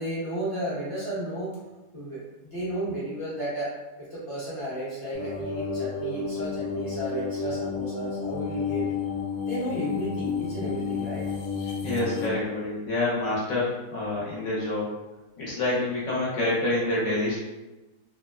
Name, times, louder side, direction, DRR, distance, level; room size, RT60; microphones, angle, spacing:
voice 1, 0.0-1.6 1.9-3.7 4.0-8.9 9.4-11.3, right 1 dB, 25° left, -10 dB, 0.8 m, -33 dB
sound 1, 5.1-12.3, left 5 dB, 80° left, 1.1 m, -31 dB
voice 2, 11.8-15.0 15.4-17.4, left 2 dB, 55° left, -7 dB, 1.0 m, -27 dB
3.0 x 2.1 x 2.3 m, 1.1 s
omnidirectional pair, 1.7 m